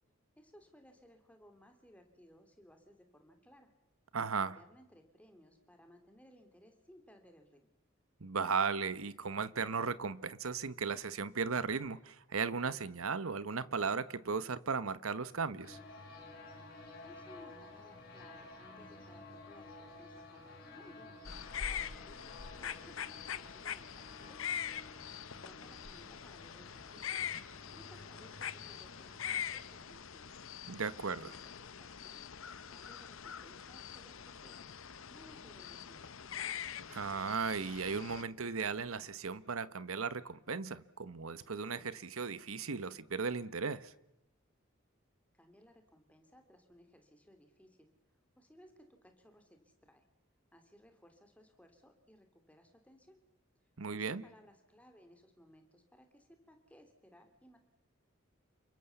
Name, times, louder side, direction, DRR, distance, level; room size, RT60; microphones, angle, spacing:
voice 1, 0.4-3.7 4.3-7.7 17.0-21.2 21.5-24.4 25.3-27.4 27.7-30.4 31.2-32.2 32.7-34.7 35.1-36.4 45.3-50.0 50.5-53.2 53.9-57.6, equal, 5° left, 2.9 m, -61 dB
voice 2, 4.1-4.6 8.2-15.8 30.7-31.3 36.9-43.9 53.8-54.2, right 5 dB, 85° right, 1.1 m, -36 dB
sound 1, 15.6-29.8, left 2 dB, 45° left, 7.2 m, -53 dB
sound 2, 21.3-38.2, left 8 dB, 75° left, 1.0 m, -43 dB
29.0 x 23.5 x 7.1 m
head